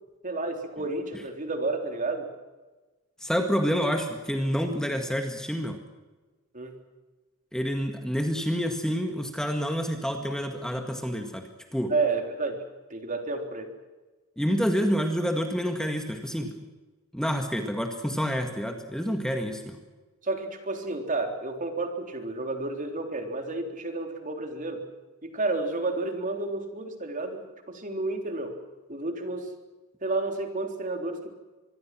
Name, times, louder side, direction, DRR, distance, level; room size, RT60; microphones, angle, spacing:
voice 1, 0.2-2.3 6.5-6.8 11.9-12.6 12.9-13.7 20.2-24.8 25.2-28.6 28.9-29.5 30.0-31.3, right 3 dB, 40° right, 4 dB, 3.7 m, -31 dB
voice 2, 3.2-5.8 7.5-11.9 14.4-16.5 17.1-19.8, equal, 5° left, 4 dB, 1.8 m, -28 dB
25.0 x 22.5 x 6.1 m, 1.2 s
head